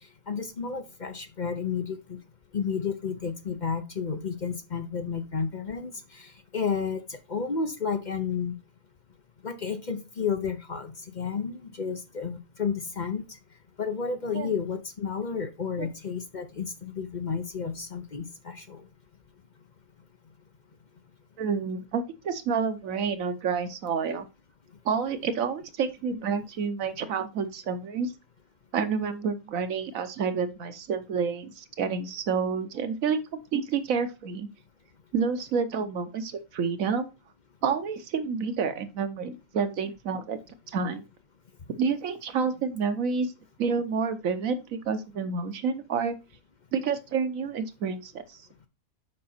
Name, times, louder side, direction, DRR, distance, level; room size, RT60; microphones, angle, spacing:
voice 1, 0.3-2.2 2.5-8.6 9.4-13.2 13.8-18.8, left 6 dB, 40° left, 8 dB, 0.8 m, -31 dB
voice 2, 21.4-24.3 24.8-28.1 28.7-34.5 35.1-37.1 37.6-40.4 40.7-41.0 41.8-43.3 43.6-46.2 46.7-48.4, right 5 dB, 90° right, 10 dB, 1.3 m, -29 dB
7.7 x 5.1 x 4.3 m, 0.27 s
omnidirectional pair, 1.4 m